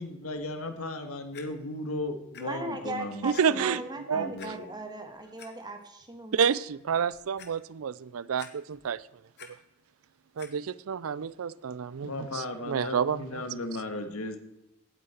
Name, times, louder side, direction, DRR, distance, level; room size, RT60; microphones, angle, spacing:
voice 1, 0.0-3.7 4.1-4.7 12.0-14.4, left 2 dB, 85° left, 1.6 m, -36 dB
Clock, 1.3-1.4 2.3-2.4 2.9-3.0 3.3-3.4 4.4-4.5 5.2-5.5 6.0-6.1 6.4-6.5 7.0-7.5 8.4-8.9 9.2-9.5 10.4-10.5 11.2-11.3, left 7 dB, 50° left, 1.5 m, -47 dB
voice 2, 2.4-6.6, right 2 dB, 20° right, 1.5 m, -38 dB
voice 3, 3.2-3.8 4.1-4.3 6.3-9.0 10.4-13.4, right 7 dB, 75° right, 0.4 m, -29 dB
17.0 x 8.6 x 4.4 m
head